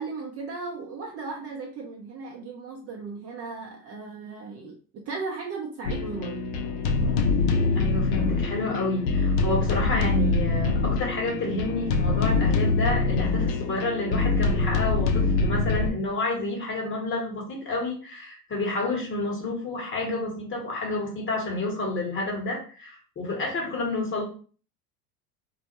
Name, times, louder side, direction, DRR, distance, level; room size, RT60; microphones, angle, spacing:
voice 1, 0.0-6.4, right 4 dB, 30° right, -1 dB, 0.6 m, -36 dB
sound 1, 5.8-15.9, left 3 dB, 70° left, 0.6 m, -24 dB
voice 2, 7.7-24.2, left 2 dB, 25° left, -1 dB, 1.0 m, -29 dB
2.3 x 2.1 x 2.8 m, 0.40 s
hypercardioid pair, 90°, 48 cm